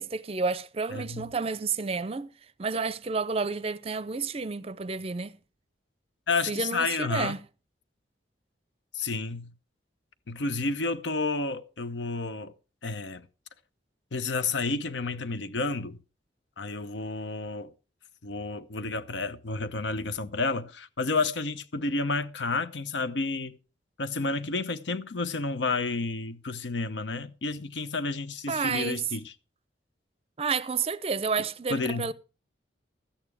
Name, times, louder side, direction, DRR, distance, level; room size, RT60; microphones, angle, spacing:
voice 1, 0.0-2.3 2.6-5.3 6.5-7.4 28.5-29.0 30.4-32.1, right 4 dB, 35° right, 0.5 m, -30 dB
voice 2, 0.9-1.3 6.3-7.4 8.9-9.5 10.3-12.5 12.8-13.3 14.1-16.0 16.6-17.7 18.2-23.6 24.0-29.3 31.7-32.1, left 3 dB, 80° left, 0.8 m, -30 dB
13.0 x 9.1 x 4.8 m
head